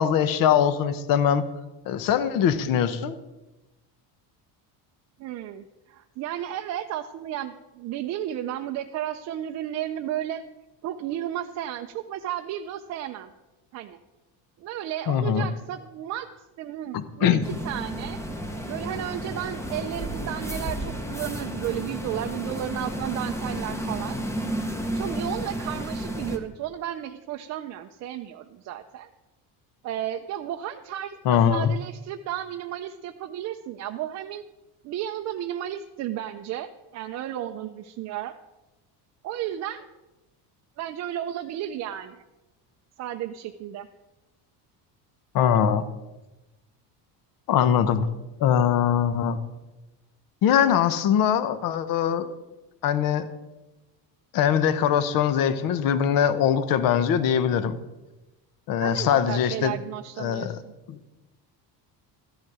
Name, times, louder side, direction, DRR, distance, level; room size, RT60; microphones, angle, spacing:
voice 1, 0.0-1.4 1.9-3.2 15.1-15.5 16.9-17.4 31.2-31.7 45.3-45.8 47.5-48.1 48.4-49.4 50.4-52.3 52.8-53.3 54.3-57.8 58.7-59.7 60.2-60.5, left 9 dB, 50° left, 13 dB, 0.9 m, -22 dB
voice 2, 5.2-10.4 10.8-13.3 13.7-14.0 14.6-16.3 16.6-17.4 17.6-18.2 18.7-24.2 24.9-29.1 29.8-34.4 34.8-38.3 39.2-39.9 40.8-42.2 43.0-43.9 58.8-60.7, right 11 dB, 40° right, 5 dB, 0.4 m, -33 dB
sound 1, 17.4-26.4, right 1 dB, 5° left, 0.7 m, -32 dB
13.5 x 10.5 x 4.8 m, 1.0 s
cardioid pair, 175°, 43 cm